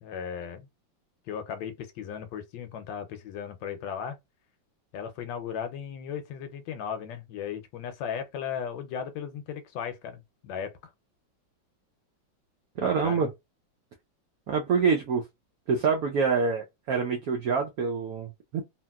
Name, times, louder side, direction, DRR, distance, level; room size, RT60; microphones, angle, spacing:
voice 1, 0.0-0.7 1.3-4.2 4.9-10.9 12.8-13.3, left 7 dB, 75° left, 1.2 m, -36 dB
voice 2, 12.8-13.3 14.5-15.2 15.7-18.6, right 5 dB, 80° right, 0.8 m, -26 dB
2.9 x 2.8 x 2.2 m
omnidirectional pair, 2.1 m